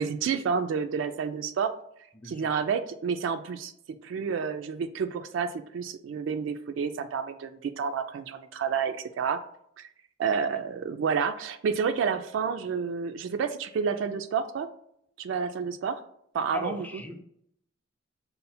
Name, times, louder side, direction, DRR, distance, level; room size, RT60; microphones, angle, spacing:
voice 1, 0.0-1.7 2.2-3.7 4.0-9.4 9.8-9.9 10.2-14.7 15.2-16.0 16.3-17.0, right 6 dB, 75° right, 9 dB, 0.3 m, -29 dB
voice 2, 2.2-2.5 16.5-17.2, left 2 dB, 10° left, 4 dB, 0.4 m, -38 dB
5.4 x 2.0 x 4.1 m, 0.71 s
head